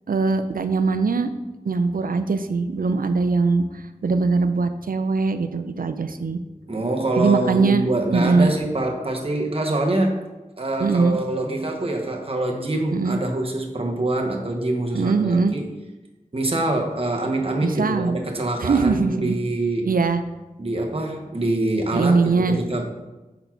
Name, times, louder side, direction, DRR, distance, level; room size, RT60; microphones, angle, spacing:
voice 1, 0.1-1.3 1.7-3.6 4.0-6.4 7.2-8.5 10.8-11.2 12.9-13.2 14.9-15.5 17.6-18.2 18.6-19.4 19.8-20.2 21.9-22.6, right 4 dB, 85° right, 9 dB, 0.4 m, -21 dB
voice 2, 6.7-10.2 10.6-15.7 16.3-19.9 20.6-22.8, right 2 dB, 40° right, 1 dB, 0.9 m, -25 dB
5.8 x 4.0 x 4.5 m, 1.1 s
wide cardioid pair, 55°, 14 cm